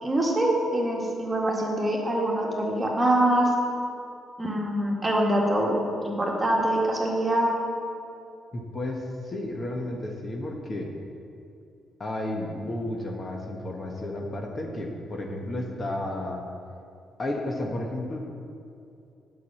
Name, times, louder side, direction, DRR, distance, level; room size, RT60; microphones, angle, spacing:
voice 1, 0.0-3.5 4.4-7.5, right 1 dB, 20° right, -2 dB, 1.9 m, -24 dB
voice 2, 8.5-10.9 12.0-16.4 17.2-18.2, left 1 dB, 35° left, 1 dB, 1.2 m, -32 dB
8.2 x 6.1 x 7.3 m, 2.5 s
cardioid pair, 90°, 0 cm